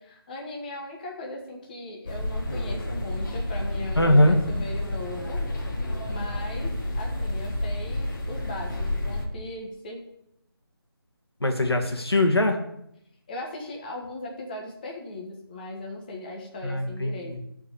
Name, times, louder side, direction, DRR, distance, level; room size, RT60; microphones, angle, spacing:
voice 1, 0.0-5.4 6.1-10.0 13.3-17.4, left 1 dB, 20° left, -1 dB, 1.2 m, -38 dB
sound 1, 2.1-9.3, left 1 dB, 50° left, 1.9 m, -30 dB
voice 2, 4.0-4.4 11.4-12.6 16.6-17.4, left 1 dB, 80° left, 4 dB, 1.9 m, -21 dB
10.0 x 4.7 x 7.2 m, 0.77 s
figure-of-eight pair, 165°, 13 cm